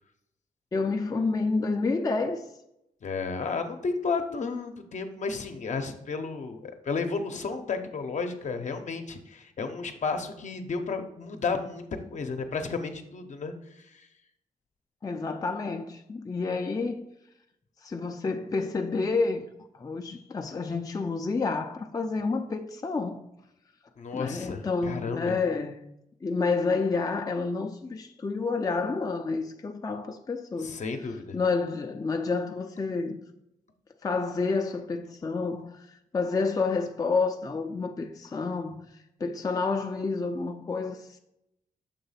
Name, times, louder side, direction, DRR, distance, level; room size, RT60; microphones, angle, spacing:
voice 1, 0.7-2.5 15.0-17.0 17.8-19.5 19.7-23.2 24.1-25.7 26.2-30.8 31.3-33.2 34.0-38.9 39.2-41.2, left 4 dB, 25° left, 0.4 m, -29 dB
voice 2, 3.0-13.5 14.0-14.1 24.0-25.4 30.6-31.4, left 4 dB, 55° left, 0.8 m, -32 dB
6.8 x 3.2 x 5.6 m
cardioid pair, 105°, 15 cm